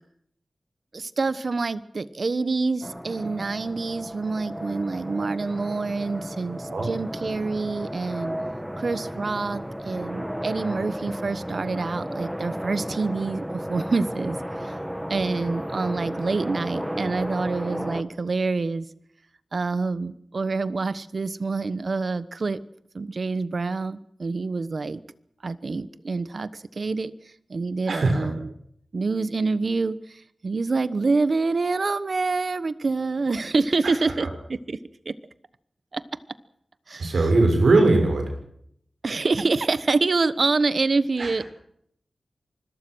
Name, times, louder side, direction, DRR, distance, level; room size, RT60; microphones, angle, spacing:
voice 1, 0.9-8.3 8.8-14.8 15.1-18.9 19.5-22.6 22.9-25.0 25.4-27.1 27.5-28.5 28.9-34.8 35.0-35.1 35.9-36.0 36.9-37.3 39.0-41.4, right 3 dB, 55° right, 15 dB, 1.1 m, -26 dB
sound 1, 2.8-18.0, equal, 5° right, 1.4 m, -33 dB
voice 2, 27.9-28.3 34.2-34.3 37.0-38.3 41.2-41.3, right 2 dB, 75° right, 4 dB, 6.4 m, -20 dB
25.0 x 21.5 x 6.3 m, 0.71 s
wide cardioid pair, 100°, 0 cm